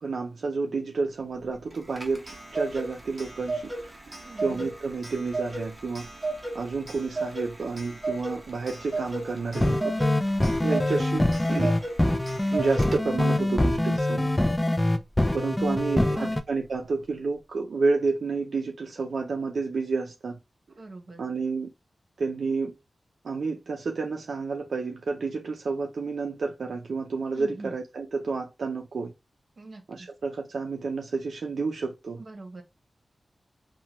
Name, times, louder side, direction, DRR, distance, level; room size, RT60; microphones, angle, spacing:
voice 1, 0.0-3.7 4.4-6.1 6.5-9.9 10.6-11.8 12.5-14.3 15.3-20.4 21.2-21.7 22.2-22.7 23.2-29.1 29.9-32.2, right 4 dB, 75° right, 0.4 m, -30 dB
Clock, 1.7-13.3, right 2 dB, 20° right, 0.8 m, -35 dB
voice 2, 4.2-4.7 9.6-10.1 15.6-15.8 16.1-16.3 20.8-21.2 27.3-27.7 29.6-30.1 32.2-32.6, right 2 dB, 50° right, 0.9 m, -43 dB
sound 1, 9.5-16.4, left 1 dB, 15° left, 0.3 m, -24 dB
2.9 x 2.1 x 2.8 m
wide cardioid pair, 115°, 0 cm